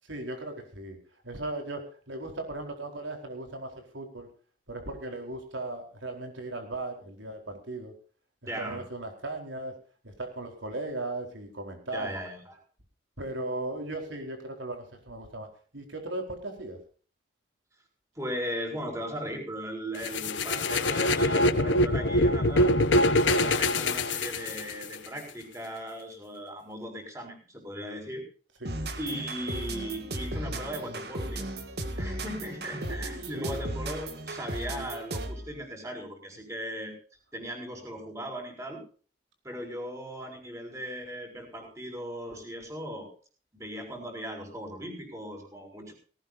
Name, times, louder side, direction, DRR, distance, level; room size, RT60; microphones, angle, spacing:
voice 1, 0.1-1.0 1.2-4.3 4.7-7.9 8.6-9.7 10.0-12.1 13.2-15.5 15.7-16.8 28.6-28.8 32.8-33.6, right 2 dB, 85° right, 4 dB, 4.4 m, -37 dB
voice 2, 8.5-8.8 11.9-12.6 18.1-22.7 23.2-28.2 29.0-31.5 32.0-36.9 37.3-38.8 39.4-43.1 43.5-45.9, equal, 15° right, 3 dB, 6.2 m, -38 dB
sound 1, 20.0-25.0, left 1 dB, 85° left, 1.3 m, -24 dB
sound 2, 28.6-35.5, right 1 dB, 55° right, 2.2 m, -35 dB
19.0 x 18.0 x 2.8 m, 0.39 s
head